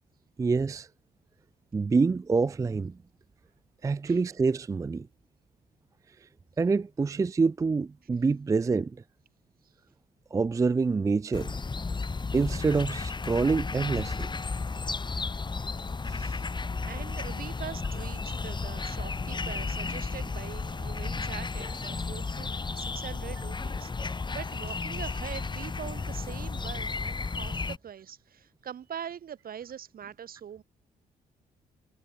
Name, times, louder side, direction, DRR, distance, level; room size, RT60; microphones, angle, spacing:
voice 1, 0.4-0.9 1.7-3.0 3.8-5.1 6.2-6.3 6.6-9.0 10.3-11.6 12.3-14.3 16.1-16.2, right 4 dB, 20° right, 0.4 m, -26 dB
sound 1, 11.3-27.8, left 4 dB, 25° left, 2.6 m, -33 dB
voice 2, 16.1-16.5 16.9-30.6, right 9 dB, 60° right, 4.2 m, -43 dB
cardioid pair, 90°, 17 cm